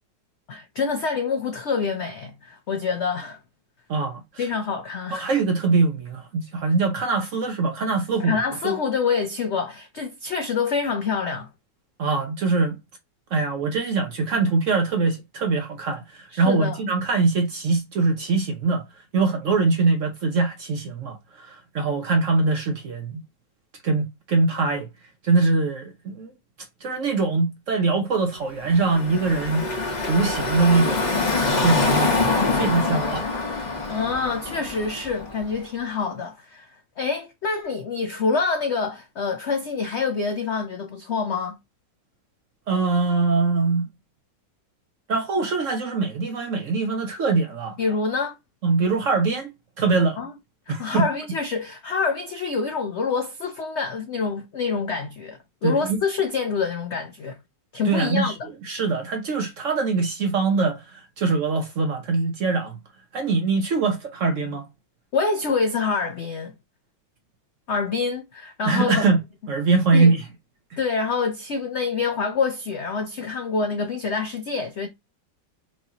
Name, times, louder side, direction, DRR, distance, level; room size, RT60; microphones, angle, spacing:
voice 1, 0.5-3.4 4.4-5.3 8.2-11.5 16.3-16.8 33.9-36.7 37.0-41.6 47.8-48.4 50.0-50.3 50.7-57.4 57.7-58.3 65.1-66.5 67.7-69.1 69.9-70.1 70.8-74.9, left 5 dB, 85° left, 0.6 m, -26 dB
voice 2, 3.9-4.4 5.1-8.4 8.6-8.7 12.0-12.8 13.3-18.8 19.1-23.2 23.8-24.9 25.2-26.3 26.8-29.6 30.1-31.1 31.6-33.2 42.7-43.9 45.1-47.8 48.6-49.5 49.8-50.2 50.7-51.1 55.6-56.0 57.8-58.3 58.6-62.8 63.1-64.7 68.6-69.2 69.5-70.2, right 3 dB, 60° right, 0.8 m, -23 dB
Car passing by / Traffic noise roadway noise, 28.6-35.5, left 3 dB, 35° left, 0.7 m, -25 dB
4.7 x 2.8 x 2.7 m
omnidirectional pair, 2.0 m